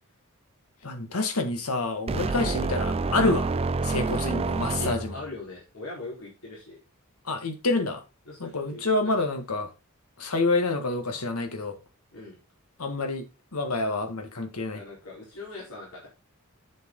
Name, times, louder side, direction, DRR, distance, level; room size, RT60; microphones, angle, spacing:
voice 1, 0.8-3.5 3.8-5.2 7.3-8.0 8.4-9.7 10.2-11.8 12.8-13.3 13.5-14.8, left 2 dB, 90° left, 1.8 m, -27 dB
sound 1, 2.1-5.3, right 3 dB, 25° right, 0.4 m, -28 dB
voice 2, 4.7-6.8 8.3-9.1 12.1-12.4 14.7-16.1, left 2 dB, 70° left, 4.4 m, -41 dB
8.7 x 7.0 x 3.9 m
head